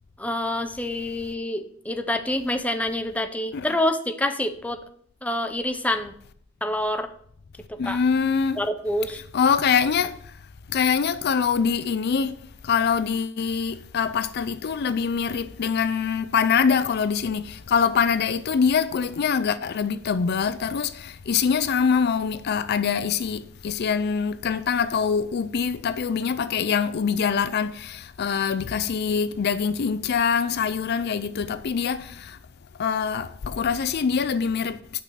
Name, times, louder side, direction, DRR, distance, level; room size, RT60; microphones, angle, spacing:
voice 1, 0.2-4.8 5.2-6.1 6.6-7.1 7.9-8.0 8.6-9.2, left 1 dB, 5° left, 0.6 m, -27 dB
voice 2, 7.8-8.6 9.3-10.2 10.7-12.4 12.6-32.4 32.8-34.8, left 6 dB, 55° left, 0.4 m, -24 dB
6.1 x 5.8 x 6.8 m
head